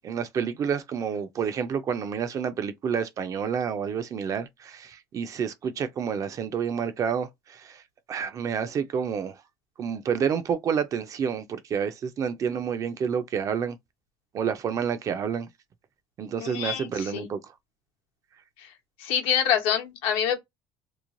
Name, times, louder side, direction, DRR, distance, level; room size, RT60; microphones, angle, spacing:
voice 1, 0.0-7.8 8.1-9.3 9.8-13.8 14.3-15.5 16.2-17.4, right 7 dB, 35° right, 0.4 m, -29 dB
voice 2, 16.4-17.3 18.6-18.7 19.0-20.4, left 9 dB, 75° left, 0.9 m, -26 dB
3.0 x 2.0 x 2.5 m
cardioid pair, 130°, 10 cm